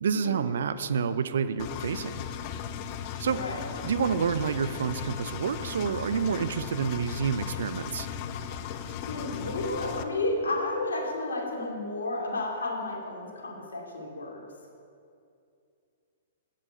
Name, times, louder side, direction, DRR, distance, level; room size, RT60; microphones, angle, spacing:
voice 1, 0.0-2.1 3.2-3.4 3.8-8.1, right 6 dB, 65° right, 13 dB, 0.5 m, -28 dB
Engine, 1.6-10.0, left 9 dB, 40° left, 0.6 m, -37 dB
voice 2, 3.3-3.6 9.1-14.4, left 2 dB, 75° left, -1 dB, 2.5 m, -32 dB
8.3 x 7.6 x 7.8 m, 2.4 s
figure-of-eight pair, 115°, 0 cm